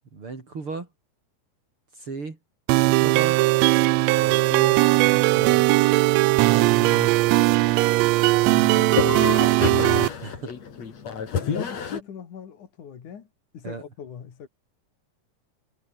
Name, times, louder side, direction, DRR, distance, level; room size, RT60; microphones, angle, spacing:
voice 1, 0.1-0.9 1.9-2.4 2.8-3.4 4.2-5.7 10.2-10.5 13.6-13.8, right 4 dB, 45° right, 4.7 m, -35 dB
sound 1, 2.7-10.1, right 20 dB, 80° right, 1.5 m, -19 dB
voice 2, 6.5-7.2 8.4-10.1 11.2-13.3 13.5-14.5, left 7 dB, 80° left, 4.2 m, -40 dB
sound 2, 6.5-12.0, left 6 dB, 60° left, 4.2 m, -30 dB
omnidirectional pair, 3.5 m